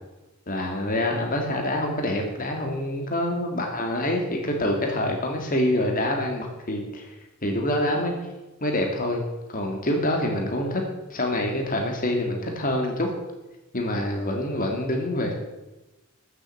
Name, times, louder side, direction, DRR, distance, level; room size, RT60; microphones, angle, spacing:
voice 1, 0.5-7.1 7.4-8.1 8.6-9.2 9.5-10.8 11.1-13.1 13.7-15.3, left 1 dB, 40° left, 2 dB, 2.3 m, -26 dB
13.5 x 7.9 x 7.8 m, 1.0 s
head